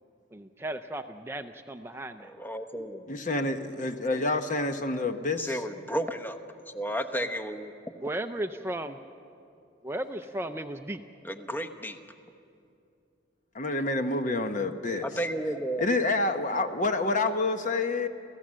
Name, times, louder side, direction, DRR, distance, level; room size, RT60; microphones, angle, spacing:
voice 1, 0.3-2.3 7.2-7.3 8.0-9.0 9.8-11.0, right 1 dB, 15° right, 7 dB, 0.5 m, -35 dB
voice 2, 2.4-3.1 5.4-6.4 6.7-7.7 11.2-12.0 15.0-15.9, right 1 dB, 10° left, 8 dB, 0.9 m, -32 dB
voice 3, 3.1-5.6 13.5-15.1 15.8-18.1, left 2 dB, 40° left, 7 dB, 1.0 m, -28 dB
30.0 x 15.0 x 7.5 m, 2.5 s
head